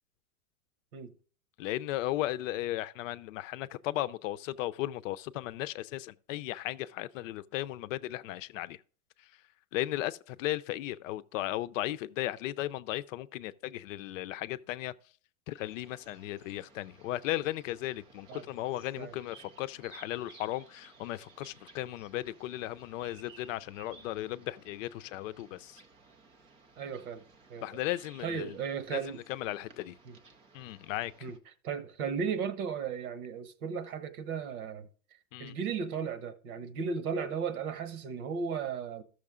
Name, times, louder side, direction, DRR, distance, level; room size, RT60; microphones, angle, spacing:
voice 1, 1.6-8.8 9.7-14.9 15.5-25.8 27.6-28.6 28.9-29.0 29.3-30.0 30.5-31.1 35.3-35.6, left 15 dB, 60° left, 0.6 m, -36 dB
sound 1, 15.5-31.4, right 4 dB, 15° right, 0.3 m, -57 dB
voice 2, 26.8-27.2 27.5-27.7 28.2-29.2 30.1-30.2 31.2-31.4 31.6-34.9 35.4-39.0, right 6 dB, 70° right, 1.3 m, -35 dB
13.0 x 6.4 x 3.7 m
hypercardioid pair, 130°, 45 cm